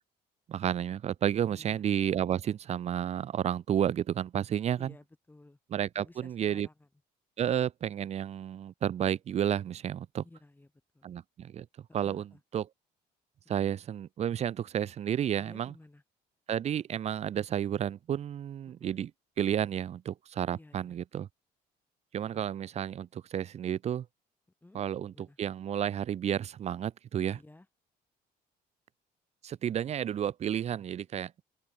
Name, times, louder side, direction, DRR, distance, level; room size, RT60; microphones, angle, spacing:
voice 1, 0.5-4.9 5.7-6.7 7.4-10.2 11.0-11.7 11.9-12.7 13.5-15.7 16.5-19.1 19.4-21.3 22.1-24.1 24.7-27.4 29.4-31.4, right 10 dB, 40° right, 0.5 m, -31 dB
voice 2, 1.5-1.8 4.8-5.6 5.9-6.9 10.2-10.7 10.9-11.1 12.0-12.4 15.4-16.0 18.8-18.9 20.5-21.0 22.3-22.4 24.6-24.8 25.1-25.4 27.3-27.7, left 2 dB, 10° left, 5.0 m, -55 dB
open air
cardioid pair, 110°, 17 cm